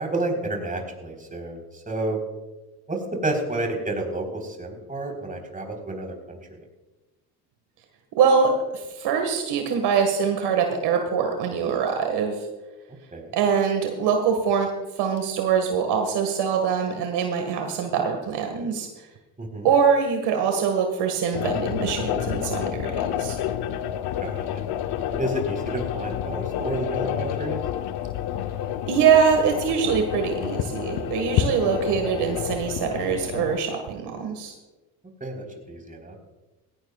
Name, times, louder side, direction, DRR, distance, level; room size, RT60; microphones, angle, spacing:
voice 1, 0.0-2.2 2.9-6.4 13.1-13.4 19.4-19.7 24.2-24.6 25.1-27.6 35.2-36.2, right 2 dB, 20° right, 2 dB, 4.0 m, -30 dB
voice 2, 8.1-12.4 13.3-14.7 15.0-18.9 19.6-23.4 28.9-34.5, right 6 dB, 60° right, 4 dB, 1.8 m, -23 dB
sound 1, 21.3-33.6, left 10 dB, 60° left, 0.9 m, -29 dB
17.5 x 16.5 x 2.4 m, 1.1 s
supercardioid pair, 80°, 44 cm